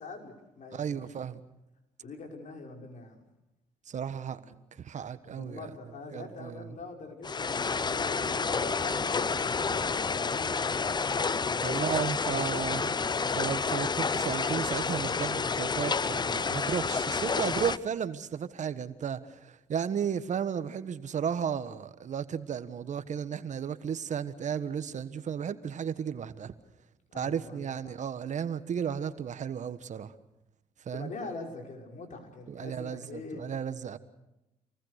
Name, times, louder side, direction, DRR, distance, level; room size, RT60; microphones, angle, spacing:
voice 1, 0.0-1.0 2.0-3.2 4.3-4.5 5.2-10.6 11.4-12.5 27.1-27.9 30.9-33.5, left 3 dB, 60° left, 3 dB, 5.6 m, -43 dB
voice 2, 0.7-1.4 3.9-4.4 4.8-5.7 6.1-6.7 11.6-12.9 13.4-26.5 27.1-30.1 30.9-31.1 32.5-34.0, right 7 dB, 55° right, 12 dB, 1.4 m, -34 dB
sound 1, 7.2-17.8, left 5 dB, 30° left, 0.7 m, -29 dB
27.5 x 19.5 x 6.6 m, 0.94 s
cardioid pair, 75°, 15 cm